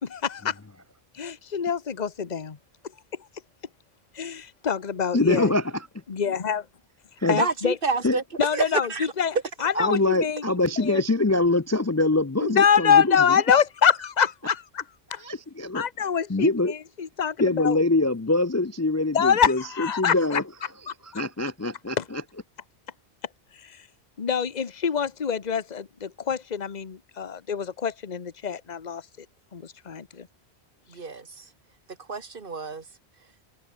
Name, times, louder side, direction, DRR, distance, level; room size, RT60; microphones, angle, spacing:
voice 1, 0.0-0.6 1.1-2.6 4.1-5.5 6.1-6.7 7.3-7.8 8.4-10.4 10.8-11.0 12.4-14.8 15.1-15.2 15.7-17.8 19.1-20.4 20.9-21.2 22.0-22.1 23.5-23.9 24.2-29.1 29.5-30.3, left 7 dB, 40° left, 1.2 m, -25 dB
voice 2, 5.1-5.6 7.2-7.4 8.0-8.2 9.8-13.2 15.2-15.8 16.3-16.7 17.4-20.4 21.1-22.2, left 2 dB, 25° left, 0.4 m, -24 dB
voice 3, 7.3-8.2 8.5-8.6 8.9-9.1 30.9-31.4 32.1-32.8, right 4 dB, 55° right, 1.8 m, -29 dB
omnidirectional pair, 1.1 m